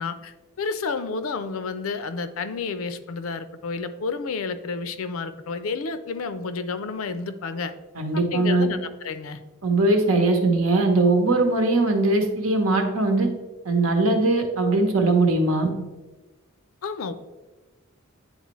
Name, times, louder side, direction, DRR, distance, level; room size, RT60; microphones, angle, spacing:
voice 1, 0.0-7.7 8.1-9.4 16.8-17.1, left 4 dB, 80° left, 11 dB, 0.5 m, -30 dB
voice 2, 8.0-8.7 9.6-13.3 13.6-15.7, right 2 dB, 85° right, 4 dB, 1.1 m, -20 dB
9.6 x 4.0 x 3.1 m, 1.2 s
head